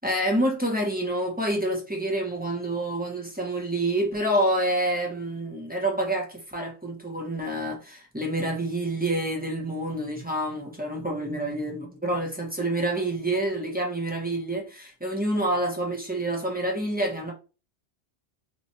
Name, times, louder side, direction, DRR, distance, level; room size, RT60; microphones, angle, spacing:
voice 1, 0.0-17.3, right 1 dB, 10° right, 0.8 m, -28 dB
3.1 x 2.4 x 4.1 m
omnidirectional pair, 1.1 m